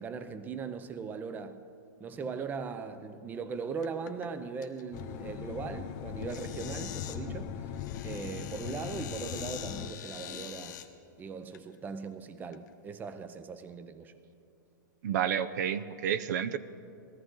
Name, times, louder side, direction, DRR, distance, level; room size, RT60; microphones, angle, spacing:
voice 1, 0.0-1.6 2.0-7.7 8.0-10.8 11.2-14.1, right 5 dB, 15° right, 0.6 m, -39 dB
sound 1, 3.8-4.3 4.6-5.0 6.2-7.2 7.7-10.9 11.5-11.6 12.4-12.7, left 11 dB, 65° left, 1.1 m, -44 dB
sound 2, 4.9-9.9, left 9 dB, 40° left, 0.6 m, -40 dB
voice 2, 15.0-16.6, right 9 dB, 60° right, 0.6 m, -30 dB
20.0 x 14.0 x 3.8 m
hypercardioid pair, 130°, 11 cm